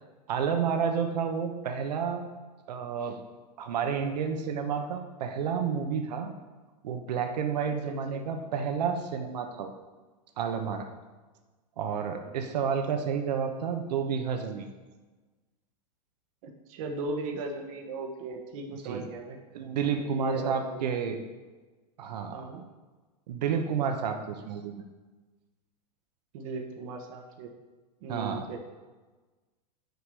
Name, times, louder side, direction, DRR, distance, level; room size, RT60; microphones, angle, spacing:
voice 1, 0.3-2.2 2.7-3.2 3.6-6.3 6.8-9.7 10.4-10.9 11.8-14.7 18.8-19.1 19.5-21.2 22.0-22.5 23.3-24.8 28.1-28.4, right 6 dB, 75° right, 5 dB, 1.1 m, -30 dB
voice 2, 3.9-4.2 7.9-8.2 16.4-19.4 20.0-20.9 22.3-22.6 26.3-27.5 28.0-28.6, right 3 dB, 55° right, 4 dB, 1.2 m, -37 dB
6.6 x 4.7 x 6.8 m, 1.3 s
supercardioid pair, 140°, 21 cm